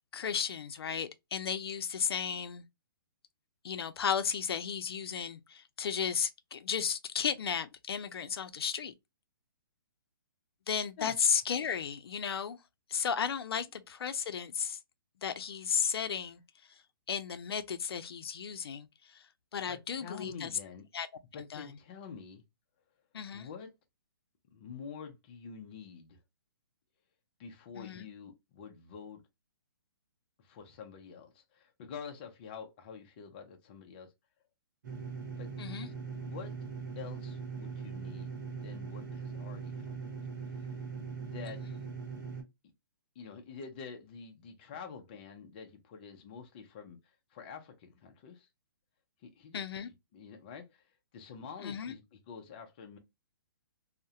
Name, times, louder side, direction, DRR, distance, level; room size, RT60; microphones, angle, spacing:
voice 1, 0.1-2.6 3.6-8.9 10.7-12.6 12.9-14.8 15.2-16.4 17.1-18.9 19.5-20.5 20.9-21.1 21.4-21.7 23.1-23.5 27.8-28.1 35.6-35.9 49.5-49.9 51.6-51.9, left 7 dB, 85° left, 0.4 m, -34 dB
voice 2, 19.7-20.8 21.3-22.4 23.3-23.7 24.5-26.2 27.4-29.2 30.4-34.1 35.4-35.5 36.1-36.6 37.0-40.1 40.5-40.8 41.2-41.6 42.6-42.7 43.2-48.5 49.2-49.6 49.9-50.8 51.1-53.0, left 6 dB, 25° left, 0.4 m, -47 dB
sound 1, 34.8-42.4, right 5 dB, 50° right, 0.9 m, -41 dB
2.3 x 2.0 x 2.7 m
hypercardioid pair, 165°, 12 cm